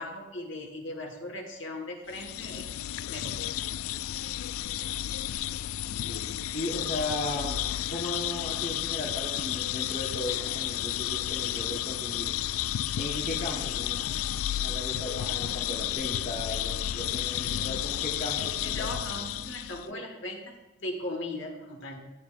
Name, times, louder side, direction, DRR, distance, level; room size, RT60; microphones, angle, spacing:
voice 1, 0.0-2.7 3.1-3.4 18.4-22.0, left 1 dB, 55° left, 2 dB, 1.5 m, -38 dB
sound 1, 2.1-19.9, left 12 dB, 80° left, 0.3 m, -32 dB
voice 2, 6.0-7.6 7.9-12.4 13.0-14.2 14.5-18.9 19.8-20.0, left 1 dB, 30° left, -3 dB, 1.2 m, -36 dB
14.0 x 8.7 x 2.5 m, 1.2 s
head